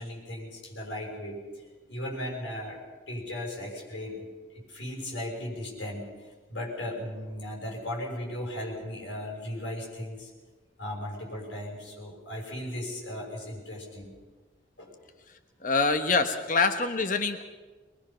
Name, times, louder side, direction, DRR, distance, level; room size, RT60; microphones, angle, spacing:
voice 1, 0.0-1.4 1.9-2.8 3.1-10.3 10.8-14.1 14.8-14.9, left 1 dB, 65° left, -2 dB, 6.3 m, -37 dB
voice 2, 15.6-17.4, left 4 dB, 45° left, 7 dB, 1.1 m, -25 dB
23.5 x 21.5 x 5.8 m, 1.3 s
head